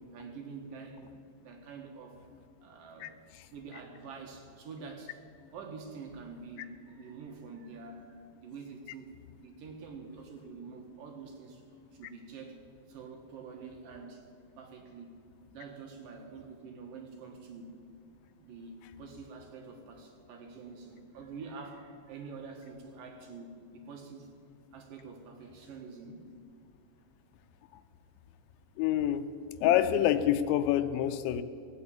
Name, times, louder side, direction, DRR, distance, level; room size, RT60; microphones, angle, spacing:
voice 1, 0.0-2.3 2.6-3.2 3.5-5.2 5.5-11.6 11.9-12.6 12.9-14.2 14.6-15.2 15.5-17.8 18.4-24.3 24.7-26.2, right 4 dB, 60° right, 2 dB, 2.6 m, -46 dB
voice 2, 28.8-29.2 29.6-31.4, left 11 dB, 85° left, 10 dB, 3.0 m, -26 dB
17.5 x 8.8 x 8.6 m, 2.4 s
omnidirectional pair, 5.3 m